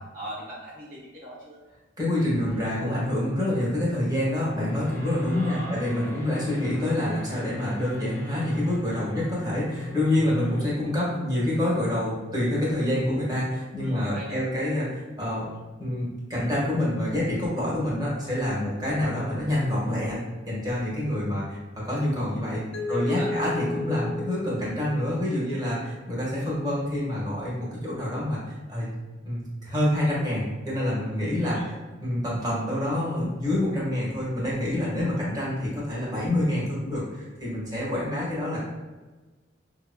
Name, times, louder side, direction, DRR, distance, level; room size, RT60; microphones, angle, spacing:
voice 1, 0.0-1.6 5.3-5.8 13.8-14.4 22.8-23.3 31.4-31.8, equal, 45° right, -8 dB, 0.8 m, -40 dB
voice 2, 2.0-15.5 15.8-20.2 20.5-28.4 28.7-28.9 29.2-31.6 32.0-38.6, left 1 dB, 20° right, -7 dB, 1.4 m, -27 dB
sound 1, 2.3-10.8, equal, 15° left, 0.6 m, -40 dB
Mallet percussion, 22.7-25.6, left 2 dB, 90° left, 0.6 m, -33 dB
5.4 x 2.9 x 2.2 m, 1.2 s
head